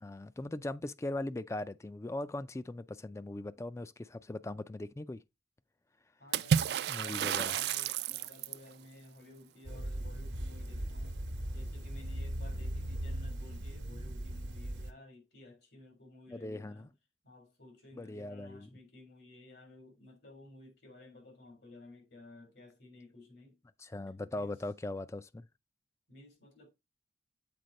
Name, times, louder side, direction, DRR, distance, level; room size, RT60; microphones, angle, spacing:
voice 1, 0.0-5.2 6.9-7.5 16.3-16.9 17.9-18.7 23.8-25.5, left 2 dB, 15° left, 0.3 m, -40 dB
voice 2, 6.2-11.2 11.5-16.9 17.2-23.6 24.3-24.6 26.1-26.7, left 2 dB, 75° left, 3.6 m, -54 dB
Water / Splash splatter, 6.3-8.7, right 8 dB, 65° right, 0.3 m, -31 dB
sound 1, 9.7-14.9, right 1 dB, 85° right, 1.0 m, -39 dB
7.8 x 4.4 x 4.0 m
head